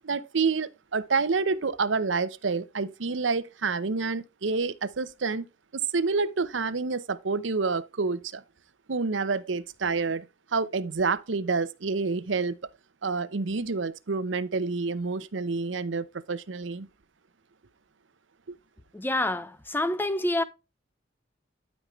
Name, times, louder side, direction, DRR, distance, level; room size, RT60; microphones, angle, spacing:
voice 1, 0.0-5.4 5.7-8.4 8.9-10.3 10.5-12.6 13.0-16.9 18.5-18.6, right 4 dB, 85° right, 0.7 m, -28 dB
voice 2, 18.9-20.4, left 1 dB, 10° left, 0.7 m, -27 dB
12.5 x 5.3 x 3.1 m
head